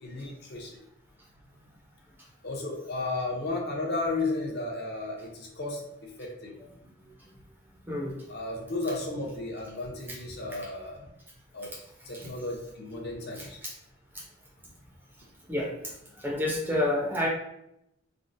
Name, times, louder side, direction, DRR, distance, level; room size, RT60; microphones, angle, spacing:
voice 1, 0.0-0.8 2.4-6.6 8.3-11.1 11.5-11.7 12.1-13.6, left 2 dB, 50° left, -1 dB, 0.6 m, -34 dB
voice 2, 7.9-8.2 12.1-12.3 13.4-13.7 14.1-14.2 15.5-15.7 16.2-17.3, left 1 dB, 10° right, -3 dB, 0.4 m, -29 dB
3.5 x 2.0 x 2.5 m, 0.80 s
head